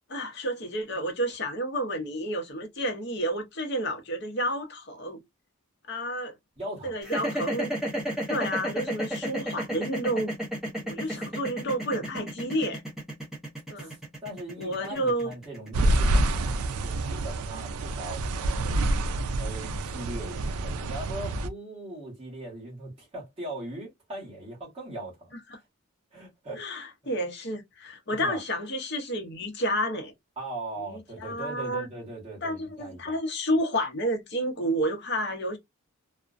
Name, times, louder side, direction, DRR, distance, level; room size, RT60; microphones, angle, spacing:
voice 1, 0.1-5.2 5.9-6.3 6.8-7.7 8.3-10.3 10.8-12.8 13.7-14.0 14.6-15.3 25.5-25.6 26.6-30.1 30.9-31.9 32.4-35.6, equal, 50° left, 0.6 m, -30 dB
voice 2, 6.6-6.9 11.0-11.2 13.8-18.9 19.3-25.3 26.1-26.8 28.1-28.4 30.4-33.2, right 1 dB, 25° right, 1.2 m, -40 dB
sound 1, 7.0-17.2, right 1 dB, ahead, 0.8 m, -32 dB
sound 2, 15.7-21.5, right 2 dB, 80° right, 0.3 m, -27 dB
2.4 x 2.1 x 2.4 m
head